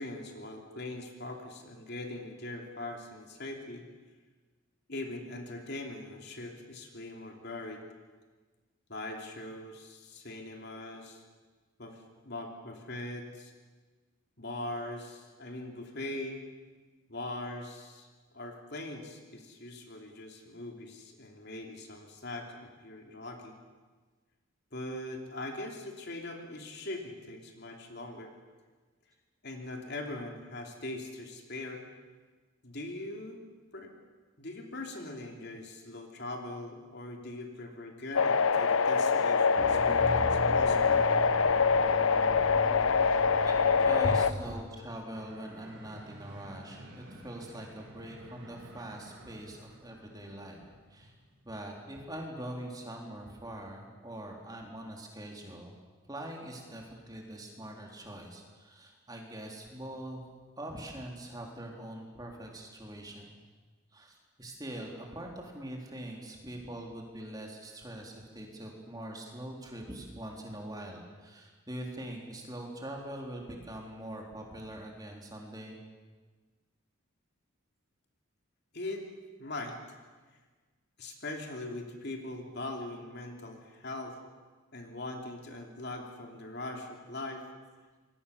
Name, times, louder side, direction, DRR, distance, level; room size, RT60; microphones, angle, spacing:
voice 1, 0.0-3.8 4.9-7.8 8.9-11.2 11.8-13.5 14.4-16.4 17.1-18.1 18.3-23.6 24.7-28.3 29.4-31.8 32.6-33.4 33.7-33.9 34.4-40.9 44.0-44.2 78.7-79.0 79.4-79.8 81.0-84.2 84.7-87.4, left 2 dB, 50° left, 3 dB, 3.1 m, -41 dB
sound 1, 38.2-44.3, left 5 dB, 75° left, 0.8 m, -25 dB
sound 2, 39.6-44.6, equal, 20° left, 2.0 m, -39 dB
voice 2, 43.4-50.6 50.9-51.1 51.5-55.7 56.1-60.2 60.6-63.4 63.9-75.8, right 1 dB, 20° right, 0 dB, 3.7 m, -43 dB
sound 3, 45.1-52.2, right 1 dB, 60° right, 4.7 m, -52 dB
27.0 x 22.0 x 7.1 m, 1.4 s
head